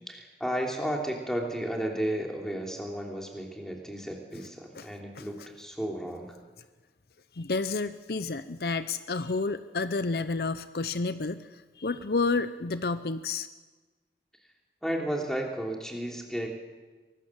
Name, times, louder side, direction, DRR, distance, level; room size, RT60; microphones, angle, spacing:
voice 1, 0.1-6.4 14.8-16.5, right 1 dB, 5° left, 1 dB, 3.1 m, -33 dB
voice 2, 7.4-11.4 11.8-13.5, left 3 dB, 60° left, 12 dB, 0.6 m, -30 dB
24.0 x 19.5 x 7.4 m, 1.3 s
head